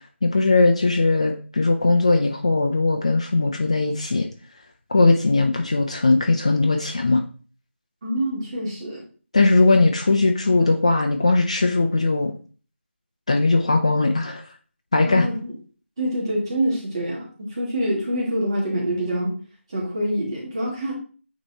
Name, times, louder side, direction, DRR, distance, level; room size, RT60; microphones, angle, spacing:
voice 1, 0.2-4.3 4.9-7.2 9.3-12.3 13.3-14.4 14.9-15.3, left 3 dB, 30° left, 3 dB, 0.5 m, -19 dB
voice 2, 8.0-9.0 15.0-15.5 16.0-19.4 19.7-20.9, right 1 dB, 25° right, -4 dB, 2.2 m, -26 dB
8.9 x 3.1 x 4.1 m, 0.40 s
figure-of-eight pair, 175°, 7 cm